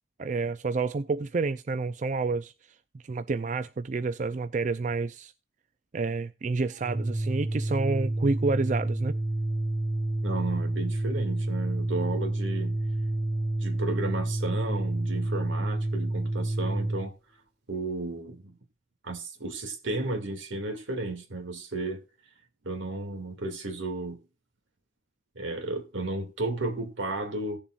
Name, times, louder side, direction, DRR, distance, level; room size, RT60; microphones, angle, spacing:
voice 1, 0.2-2.5 3.0-5.3 5.9-9.2, right 3 dB, 40° right, 0.4 m, -29 dB
Organ, 6.8-17.1, right 2 dB, 60° right, 2.2 m, -29 dB
voice 2, 10.2-12.8 13.6-17.1 17.7-18.6 19.0-22.0 22.6-24.2 25.4-27.6, right 2 dB, 85° right, 2.3 m, -33 dB
18.0 x 7.0 x 2.4 m
head